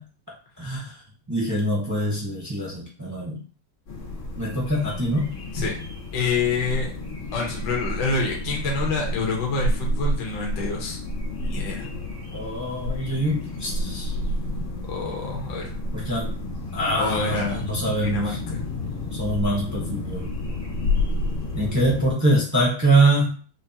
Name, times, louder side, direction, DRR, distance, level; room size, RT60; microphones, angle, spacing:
voice 1, 0.6-1.0 1.3-3.4 4.4-5.3 12.3-14.2 15.9-16.3 16.7-18.4 19.1-20.3 21.5-23.3, right 1 dB, 20° right, -3 dB, 0.4 m, -24 dB
sound 1, 3.9-22.1, left 1 dB, 85° left, 2.3 m, -30 dB
voice 2, 6.1-6.9 7.3-11.0 11.4-11.9 14.9-15.6 17.0-17.6 18.0-18.6, left 4 dB, 65° left, -1 dB, 1.6 m, -27 dB
6.1 x 2.2 x 2.8 m, 0.40 s
omnidirectional pair, 2.1 m